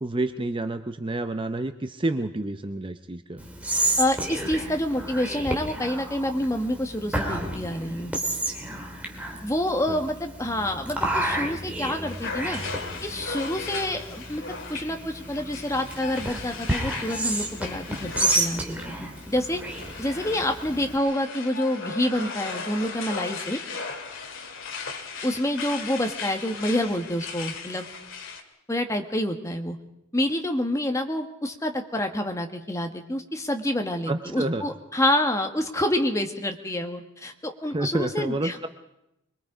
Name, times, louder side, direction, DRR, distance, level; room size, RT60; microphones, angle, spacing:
voice 1, 0.0-3.5 9.9-10.0 34.1-34.6 37.7-38.7, right 2 dB, 25° right, 8 dB, 0.7 m, -29 dB
Whispering, 3.4-21.0, right 1 dB, 5° right, 2.5 m, -31 dB
voice 2, 4.0-8.1 9.4-12.6 13.0-14.4 14.7-18.7 19.0-19.6 20.0-23.6 25.2-27.8 28.7-29.8 30.1-38.7, left 1 dB, 15° left, 4 dB, 1.5 m, -27 dB
sound 1, 12.1-28.4, left 5 dB, 65° left, 2.1 m, -37 dB
25.5 x 21.5 x 5.0 m, 0.84 s
head